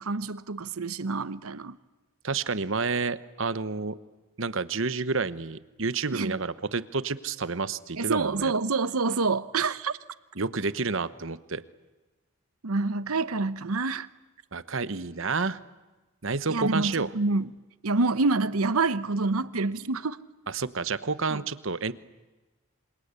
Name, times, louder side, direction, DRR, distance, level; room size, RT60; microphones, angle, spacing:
voice 1, 0.0-1.8 6.1-6.4 8.0-10.0 12.6-14.1 16.5-17.5 17.8-20.2 21.3-21.4, right 3 dB, 90° right, 0.9 m, -27 dB
voice 2, 2.2-4.0 4.4-8.5 10.4-11.6 14.5-15.6 16.2-17.1 20.5-21.9, right 4 dB, 65° right, 1.1 m, -29 dB
27.0 x 26.5 x 8.3 m
head